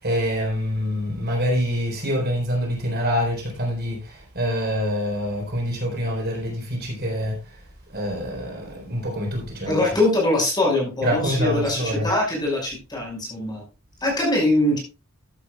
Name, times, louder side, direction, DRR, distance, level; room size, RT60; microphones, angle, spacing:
voice 1, 0.0-7.3 7.9-9.8 11.0-12.1, equal, 45° right, 4.2 m, -25 dB
voice 2, 9.7-13.6 14.0-14.8, left 1 dB, 20° left, 5.6 m, -22 dB
13.0 x 11.0 x 2.4 m
head